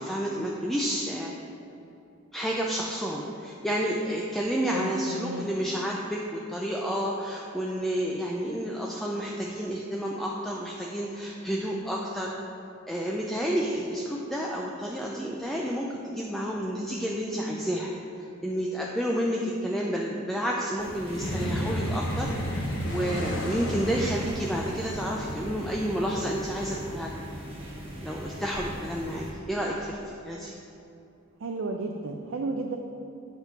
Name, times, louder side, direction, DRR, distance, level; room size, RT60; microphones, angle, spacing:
voice 1, 0.0-1.3 2.3-12.3 12.9-17.9 18.2-27.2 28.0-30.5, equal, ahead, -3 dB, 0.4 m, -30 dB
voice 2, 4.7-5.4 31.4-32.8, right 3 dB, 70° right, 3 dB, 0.5 m, -33 dB
sound 1, 20.8-29.3, right 1 dB, 30° right, 1.2 m, -40 dB
sound 2, 21.1-27.7, equal, 65° left, 1.0 m, -33 dB
8.1 x 3.7 x 5.8 m, 2.8 s
head